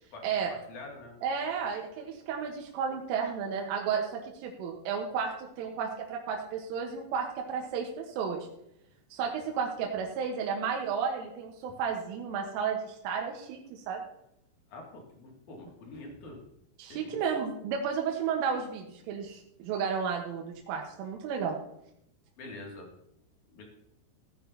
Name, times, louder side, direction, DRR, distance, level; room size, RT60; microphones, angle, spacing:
voice 1, 0.1-1.1 9.2-9.3 14.7-16.4 16.9-17.2 22.4-22.9 23.5-23.6, left 2 dB, 45° left, 0 dB, 3.2 m, -46 dB
voice 2, 1.2-8.5 9.1-14.0 16.8-21.6, right 6 dB, 80° right, 0 dB, 3.7 m, -33 dB
16.5 x 10.0 x 2.9 m, 0.78 s
omnidirectional pair, 5.9 m